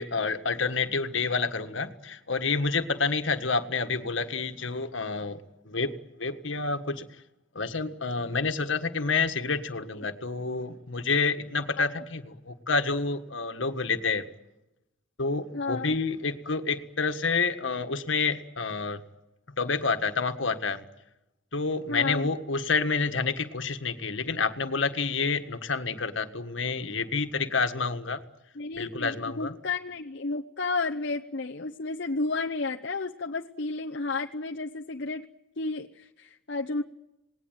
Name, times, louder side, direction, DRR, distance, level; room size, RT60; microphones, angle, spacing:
voice 1, 0.0-5.4 5.6-5.9 6.2-7.1 7.5-14.3 15.2-19.0 19.6-20.8 21.5-28.2 28.7-29.5, left 4 dB, 75° left, 8 dB, 1.7 m, -28 dB
voice 2, 15.5-15.9 21.9-22.3 28.6-35.3 35.6-36.8, left 3 dB, 60° left, 2 dB, 0.8 m, -32 dB
27.5 x 19.0 x 9.2 m, 0.94 s
head